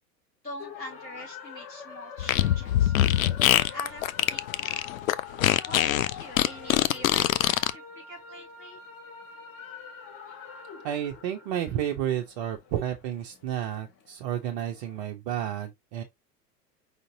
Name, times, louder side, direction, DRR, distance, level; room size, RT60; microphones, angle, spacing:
voice 1, 0.4-2.9 3.4-4.0 4.3-4.8 5.7-8.8 10.3-10.4, left 2 dB, 85° left, 2.4 m, -43 dB
sound 1, 0.6-15.1, left 6 dB, 30° left, 1.2 m, -45 dB
Fart, 2.2-7.7, left 12 dB, 60° left, 0.5 m, -23 dB
voice 2, 10.8-16.0, right 10 dB, 30° right, 0.5 m, -31 dB
4.9 x 3.8 x 2.7 m
figure-of-eight pair, 90°, 49 cm